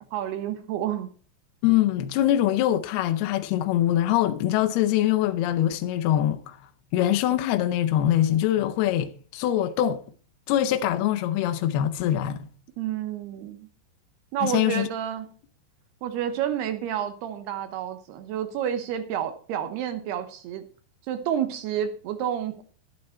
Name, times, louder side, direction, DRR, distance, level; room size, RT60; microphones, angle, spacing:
voice 1, 0.1-1.1 12.8-13.7 14.3-15.3 16.0-20.6 21.1-22.6, right 9 dB, 75° right, 2.8 m, -29 dB
voice 2, 1.6-6.6 6.9-10.0 10.5-12.4 14.4-14.9, left 12 dB, 75° left, 2.4 m, -23 dB
12.0 x 10.5 x 4.4 m
omnidirectional pair, 5.2 m